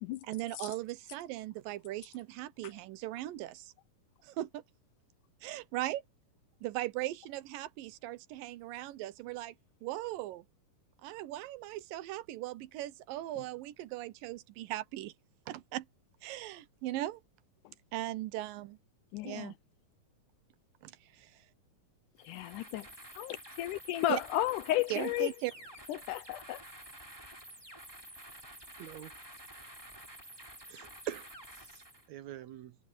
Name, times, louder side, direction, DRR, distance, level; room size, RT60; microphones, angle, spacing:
voice 1, 0.2-3.7 4.2-4.6 5.4-6.0 6.6-9.5 9.8-10.5 11.0-15.1 15.5-15.9 16.2-17.2 17.9-18.8 19.2-19.6 20.8-21.3 24.1-24.2 24.9-25.5, right 16 dB, 85° right, 2.5 m, -38 dB
voice 2, 19.1-19.5 22.2-22.9 23.2-25.3 25.9-26.6, left 15 dB, 75° left, 2.0 m, -33 dB
sound 1, 22.2-32.1, right 1 dB, 5° right, 3.3 m, -50 dB
voice 3, 28.8-29.2 30.6-32.8, right 12 dB, 70° right, 1.9 m, -45 dB
omnidirectional pair, 3.9 m